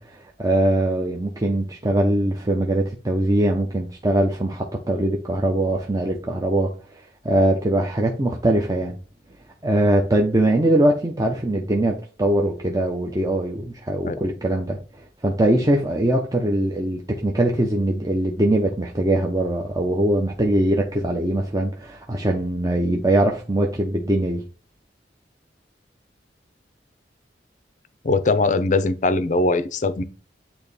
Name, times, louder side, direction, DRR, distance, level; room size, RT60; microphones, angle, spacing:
voice 1, 0.0-9.0 9.6-24.4, right 1 dB, 20° right, 0.7 m, -22 dB
voice 2, 28.0-30.0, left 3 dB, 45° left, 0.5 m, -21 dB
8.8 x 2.9 x 4.1 m
head